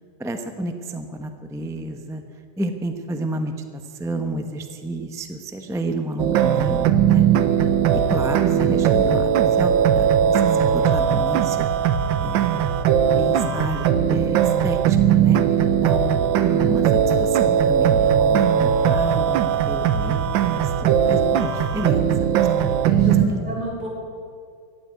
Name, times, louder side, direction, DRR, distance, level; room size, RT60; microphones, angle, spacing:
voice 1, 0.2-2.2 2.6-3.5 3.8-7.3 7.9-11.7 12.2-15.4 15.8-16.3 16.6-22.1 22.4-23.5, right 1 dB, 5° right, 6 dB, 0.4 m, -30 dB
sound 1, 6.2-23.3, right 8 dB, 90° right, 1.5 m, -19 dB
voice 2, 22.4-23.9, right 2 dB, 55° right, -4 dB, 4.9 m, -34 dB
15.5 x 9.3 x 9.6 m, 2.4 s
omnidirectional pair, 2.0 m